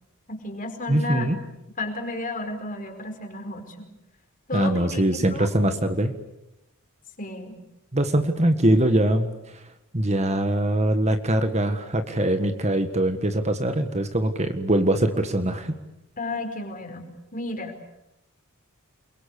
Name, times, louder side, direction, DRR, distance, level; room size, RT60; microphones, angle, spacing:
voice 1, 0.3-1.3 1.8-3.9 4.5-5.5 7.2-7.6 16.2-17.7, left 2 dB, 40° left, 5 dB, 4.8 m, -33 dB
voice 2, 0.9-1.4 4.5-6.1 7.9-9.6 9.9-15.7, right 1 dB, 30° right, 8 dB, 1.6 m, -22 dB
29.0 x 22.5 x 8.4 m, 0.89 s
head